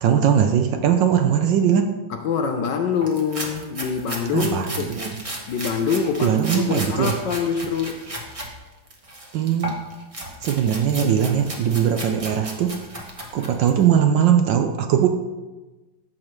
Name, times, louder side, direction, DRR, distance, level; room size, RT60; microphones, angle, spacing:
voice 1, 0.0-1.9 4.3-5.1 6.2-7.2 9.3-9.8 10.4-12.9 13.3-15.1, right 8 dB, 70° right, 6 dB, 1.2 m, -20 dB
voice 2, 2.1-5.0 5.5-8.1 10.7-10.8, left 6 dB, 70° left, 6 dB, 1.1 m, -25 dB
sound 1, 3.0-8.5 8.9-13.8, right 1 dB, 25° right, 0.7 m, -35 dB
13.5 x 6.3 x 3.1 m, 1.2 s
omnidirectional pair, 2.3 m